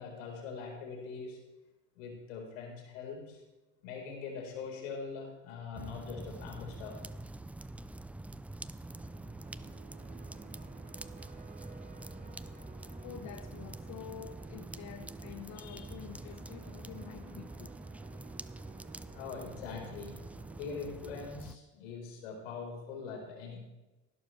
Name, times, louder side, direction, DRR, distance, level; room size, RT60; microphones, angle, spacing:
voice 1, 0.0-1.4 2.0-3.4 3.8-7.0 19.1-20.2 20.6-23.6, left 5 dB, 80° left, 1 dB, 4.4 m, -42 dB
sound 1, 5.7-21.6, right 2 dB, 5° right, 0.4 m, -46 dB
sound 2, 8.6-20.6, right 5 dB, 20° right, 1.3 m, -53 dB
voice 2, 13.0-17.7 18.1-18.2, left 9 dB, 45° left, 7 dB, 1.0 m, -48 dB
19.0 x 12.0 x 3.3 m, 1.1 s
hypercardioid pair, 80°, 38 cm